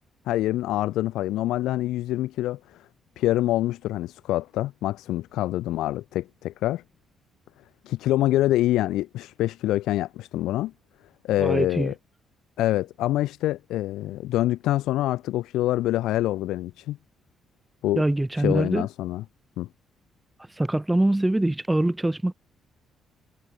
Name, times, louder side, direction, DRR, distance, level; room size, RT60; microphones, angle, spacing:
voice 1, 0.3-2.6 3.2-6.8 7.9-10.7 11.2-11.9 12.6-17.0 17.8-18.0 18.4-19.2 19.6-19.7, left 15 dB, 90° left, 0.3 m, -25 dB
voice 2, 11.4-11.9 18.0-18.9 20.6-22.3, right 1 dB, 10° right, 0.5 m, -23 dB
cardioid pair, 90°, 0 cm